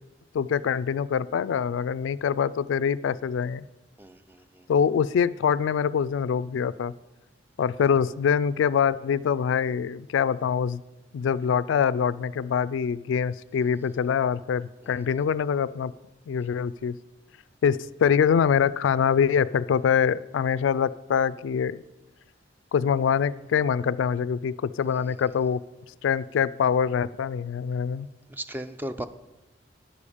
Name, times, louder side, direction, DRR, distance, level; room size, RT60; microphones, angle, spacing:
voice 1, 0.3-3.7 4.7-6.9 7.6-10.8 11.1-15.9 16.3-17.0 17.6-21.8 22.7-25.6 26.0-28.1, left 7 dB, 90° left, 17 dB, 0.3 m, -24 dB
voice 2, 4.0-4.7 14.8-15.0 24.9-25.2 28.3-29.1, right 1 dB, 10° right, 11 dB, 0.3 m, -37 dB
10.5 x 7.0 x 4.9 m, 1.1 s
head